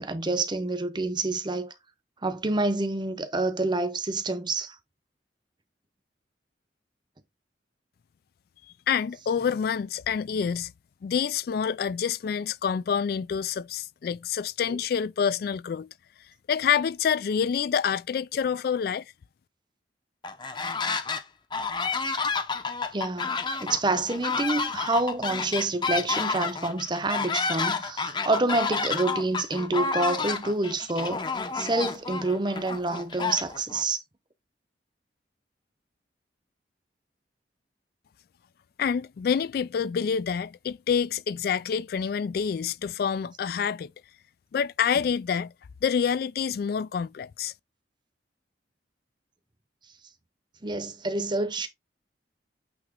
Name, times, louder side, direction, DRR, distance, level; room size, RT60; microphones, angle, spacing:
voice 1, 0.0-1.7 2.2-4.8 14.7-14.8 22.9-34.0 50.6-51.7, right 2 dB, 25° right, 0.8 m, -28 dB
voice 2, 8.9-10.7 11.0-15.9 16.5-19.0 38.8-43.9 44.5-45.5 45.8-47.5, left 7 dB, 55° left, 0.3 m, -27 dB
sound 1, 20.2-21.2 21.5-33.8, left 4 dB, 25° left, 0.7 m, -30 dB
8.7 x 2.9 x 3.7 m
head